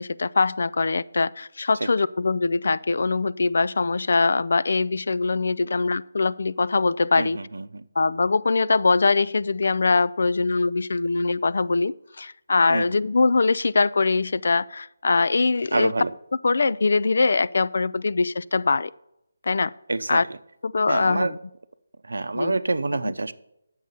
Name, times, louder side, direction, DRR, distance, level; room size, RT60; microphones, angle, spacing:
voice 1, 0.0-7.4 8.0-15.9 16.4-18.9 19.4-19.7 20.1-20.2 20.6-21.4 22.3-22.6, left 3 dB, 55° left, 18 dB, 0.3 m, -22 dB
voice 2, 7.1-7.9 12.7-13.0 15.7-16.1 19.9-20.2 20.9-21.3 22.0-23.3, right 3 dB, 85° right, 14 dB, 0.6 m, -27 dB
9.5 x 7.5 x 5.6 m, 0.83 s
hypercardioid pair, 175°, 0 cm